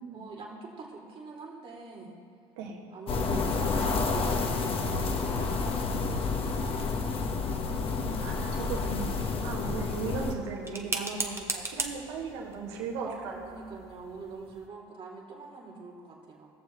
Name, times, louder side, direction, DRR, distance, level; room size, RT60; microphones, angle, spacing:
voice 1, 0.1-2.2 2.9-7.3 9.6-9.9 13.0-16.5, right 4 dB, 40° right, -3 dB, 2.7 m, -44 dB
sound 1, 3.1-10.3, left 4 dB, 40° left, 1.2 m, -30 dB
voice 2, 7.7-13.4, right 5 dB, 80° right, -1 dB, 1.9 m, -37 dB
sound 2, 9.5-14.7, right 3 dB, 20° right, 1.3 m, -39 dB
19.5 x 6.9 x 3.1 m, 2.2 s
hypercardioid pair, 80°, 14 cm